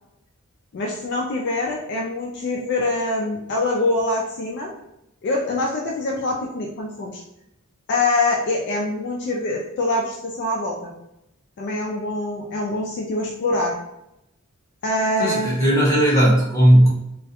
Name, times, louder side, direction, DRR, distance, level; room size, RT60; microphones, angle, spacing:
voice 1, 0.7-4.7 5.2-7.2 7.9-10.9 11.6-13.8 14.8-15.6, left 2 dB, 50° left, -1 dB, 0.3 m, -24 dB
voice 2, 15.2-16.9, right 1 dB, 15° left, -6 dB, 0.8 m, -16 dB
2.3 x 2.1 x 2.7 m, 0.87 s
head